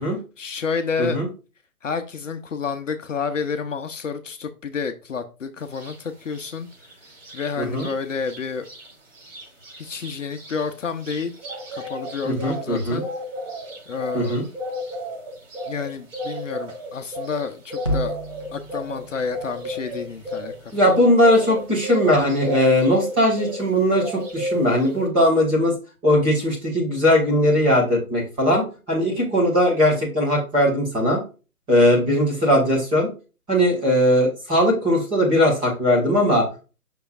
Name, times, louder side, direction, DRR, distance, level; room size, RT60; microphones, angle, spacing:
voice 1, 0.4-1.2 1.8-6.7 7.3-8.7 9.8-11.3 11.7-13.1 13.9-14.4 15.7-18.2 18.5-20.5 20.8-20.9, left 5 dB, 55° left, 7 dB, 0.8 m, -29 dB
sound 1, 5.7-5.9 6.3-7.9 8.2-8.4 8.6-23.7 23.9-25.0, equal, 55° right, 3.2 m, -33 dB
voice 2, 7.6-7.9 12.2-13.0 14.1-14.4 20.7-25.7 26.0-31.2 31.7-33.1 33.5-36.5, equal, 10° right, -4 dB, 1.6 m, -19 dB
sound 2, 17.8-22.2, right 1 dB, 25° left, 0.4 m, -34 dB
6.7 x 5.8 x 2.5 m, 0.32 s
figure-of-eight pair, 150°, 45 cm